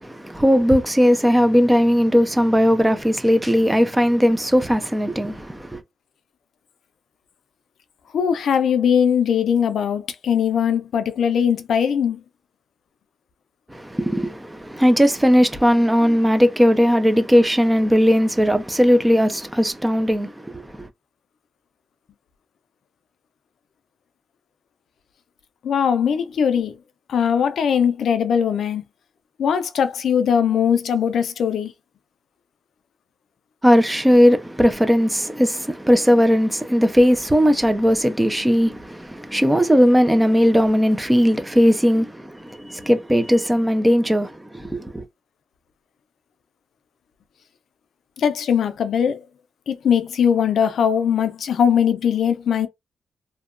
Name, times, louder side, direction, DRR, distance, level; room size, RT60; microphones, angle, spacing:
voice 1, 0.0-5.8 13.7-20.9 33.6-45.0, equal, 5° right, 0.4 m, -18 dB
voice 2, 8.1-12.2 25.6-26.8 27.1-28.8 29.4-31.7 48.2-49.2 49.7-52.7, left 8 dB, 60° left, 0.4 m, -20 dB
2.7 x 2.2 x 2.4 m
cardioid pair, 145°, 0 cm